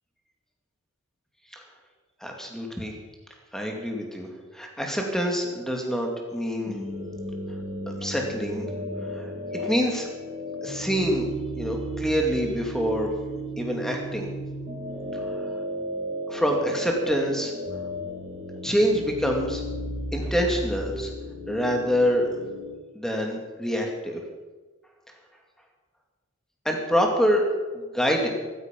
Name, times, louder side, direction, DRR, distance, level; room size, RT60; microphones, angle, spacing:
voice 1, 2.2-2.9 3.5-6.8 7.9-8.7 9.1-10.1 10.6-11.3 11.6-13.1 13.6-14.3 15.1-15.5 16.3-17.5 18.6-19.6 20.1-21.1 21.5-22.3 22.9-24.2 26.6-27.4 27.7-28.3, equal, ahead, 1 dB, 2.4 m, -26 dB
sound 1, 6.7-22.7, equal, 25° right, 3.5 m, -34 dB
15.0 x 14.0 x 5.3 m, 1.3 s
head